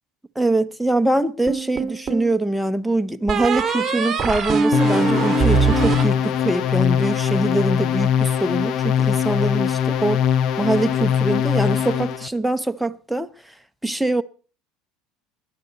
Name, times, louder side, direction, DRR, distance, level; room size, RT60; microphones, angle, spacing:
voice 1, 0.4-10.2 10.6-13.3 13.8-14.2, right 2 dB, ahead, 0.7 m, -23 dB
sound 1, 1.5-2.3 3.3-6.8, right 5 dB, 25° right, 2.0 m, -22 dB
sound 2, 4.7-12.3, left 9 dB, 55° left, 0.9 m, -21 dB
19.0 x 10.5 x 4.1 m
supercardioid pair, 105°, 0 cm